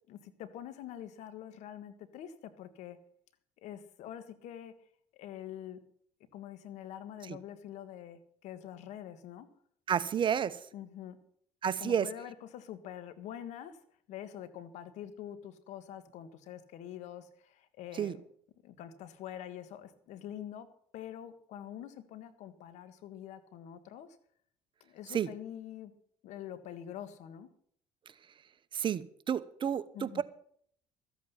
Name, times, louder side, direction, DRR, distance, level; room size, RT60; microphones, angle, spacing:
voice 1, 0.1-3.0 3.6-4.8 5.1-5.8 6.3-9.5 10.7-11.2 11.8-13.8 14.1-18.2 18.6-20.7 20.9-24.2 24.8-25.9 26.2-27.5 29.9-30.2, left 10 dB, 70° left, 12 dB, 1.5 m, -45 dB
voice 2, 9.9-10.6 11.6-12.1 17.9-18.2 25.1-25.3 28.7-30.2, right 8 dB, 40° right, 15 dB, 0.9 m, -31 dB
13.5 x 8.5 x 7.0 m, 0.62 s
supercardioid pair, 85°, 12 cm